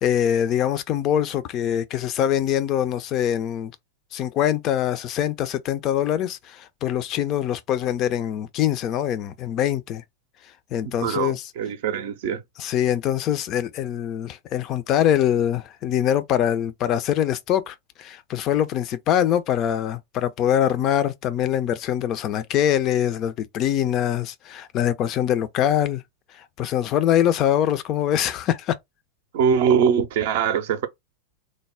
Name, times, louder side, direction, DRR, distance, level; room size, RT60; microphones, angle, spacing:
voice 1, 0.0-3.7 4.1-10.0 10.7-11.4 12.6-26.0 26.3-28.7, left 10 dB, 35° left, 0.4 m, -23 dB
voice 2, 11.0-12.4 29.3-30.9, right 7 dB, 50° right, 0.5 m, -22 dB
3.2 x 2.0 x 3.5 m
figure-of-eight pair, 90°, 0 cm